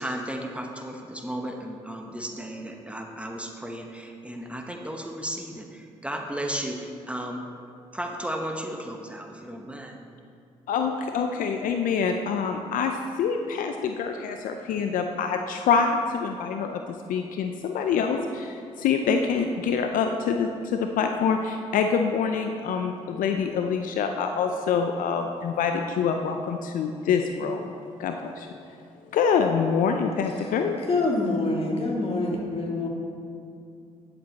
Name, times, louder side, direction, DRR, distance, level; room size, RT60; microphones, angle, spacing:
voice 1, 0.0-7.5 7.9-10.0, right 1 dB, 10° right, 2 dB, 1.1 m, -34 dB
voice 2, 10.7-27.7 28.0-28.5 29.1-30.8, left 6 dB, 70° left, 5 dB, 0.5 m, -26 dB
voice 3, 30.8-32.9, left 2 dB, 45° left, -1 dB, 2.2 m, -26 dB
10.0 x 7.9 x 4.1 m, 2.5 s
supercardioid pair, 55°, 14 cm